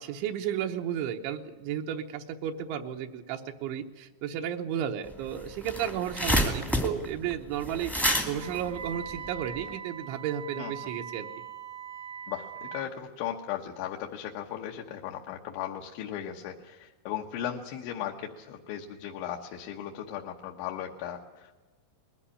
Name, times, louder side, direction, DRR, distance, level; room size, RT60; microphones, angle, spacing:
voice 1, 0.0-7.9 8.3-11.3, right 9 dB, 85° right, 3 dB, 3.3 m, -33 dB
sound 1, 5.1-5.2 5.4-9.7, equal, ahead, 0.6 m, -29 dB
Wind instrument woodwind instrument, 8.3-12.9, right 8 dB, 50° right, 1.2 m, -41 dB
voice 2, 12.3-21.6, left 10 dB, 85° left, 0 dB, 3.5 m, -37 dB
21.0 x 14.5 x 9.8 m, 1.2 s
omnidirectional pair, 5.2 m